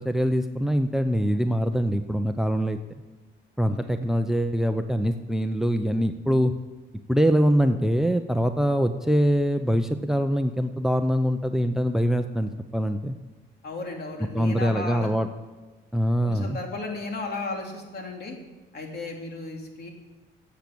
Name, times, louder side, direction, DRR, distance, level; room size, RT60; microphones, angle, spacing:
voice 1, 0.0-2.8 3.6-6.5 7.1-13.2 14.3-15.3 15.9-16.6, equal, ahead, 9 dB, 0.7 m, -23 dB
voice 2, 3.6-4.0 13.6-15.1 16.2-18.4 18.7-19.9, left 3 dB, 55° left, 1 dB, 3.3 m, -35 dB
12.5 x 8.4 x 8.7 m, 1.2 s
cardioid pair, 90°, 20 cm